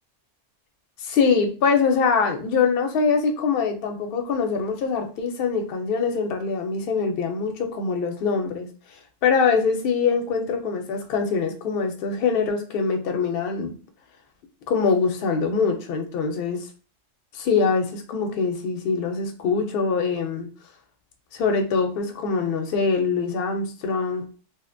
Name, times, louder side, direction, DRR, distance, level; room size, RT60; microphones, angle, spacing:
voice 1, 1.0-8.7 9.2-13.7 14.7-16.7 17.3-20.5 21.3-24.4, left 5 dB, 60° left, 4 dB, 0.6 m, -23 dB
2.6 x 2.1 x 2.5 m, 0.37 s
omnidirectional pair, 1.3 m